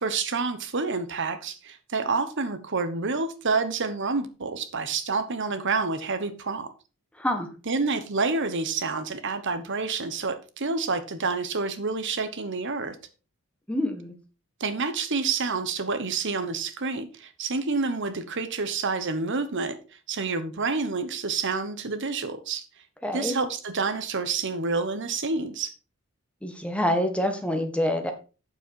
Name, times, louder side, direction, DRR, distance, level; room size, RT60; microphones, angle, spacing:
voice 1, 0.0-6.7 7.7-13.0 14.6-19.8 20.1-22.6 23.1-25.7, right 4 dB, 55° right, 1.1 m, -28 dB
voice 2, 13.7-14.1 23.0-23.4 26.4-28.1, left 1 dB, 5° left, 1.5 m, -26 dB
8.8 x 7.5 x 4.6 m
head